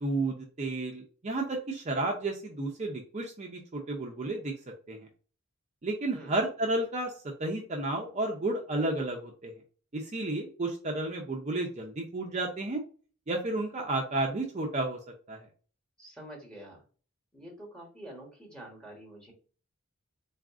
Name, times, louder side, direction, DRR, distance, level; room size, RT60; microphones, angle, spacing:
voice 1, 0.0-4.5 4.9-5.0 5.8-7.1 7.4-9.5 9.9-12.8 13.3-15.0 15.3-15.5, right 2 dB, 35° right, 1 dB, 0.5 m, -32 dB
voice 2, 16.0-16.8 17.3-19.3, right 1 dB, 5° left, -1 dB, 1.3 m, -47 dB
4.0 x 2.5 x 3.5 m, 0.40 s
head